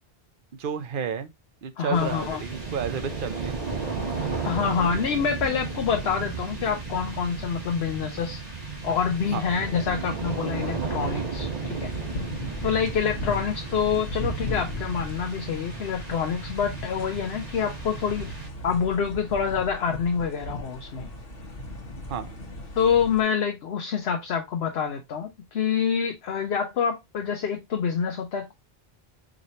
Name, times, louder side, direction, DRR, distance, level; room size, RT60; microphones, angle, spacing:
voice 1, 0.5-1.3 1.6-3.8 9.3-9.5 22.1-22.4, right 7 dB, 60° right, 0.8 m, -32 dB
voice 2, 1.8-2.4 4.4-8.4 8.8-11.9 12.6-18.3 18.6-21.1 22.8-28.5, left 7 dB, 80° left, 1.0 m, -26 dB
sound 1, 1.9-18.9, right 4 dB, 40° right, 1.5 m, -34 dB
sound 2, 11.8-23.2, left 1 dB, 65° left, 1.3 m, -37 dB
4.9 x 3.2 x 2.7 m
omnidirectional pair, 1.0 m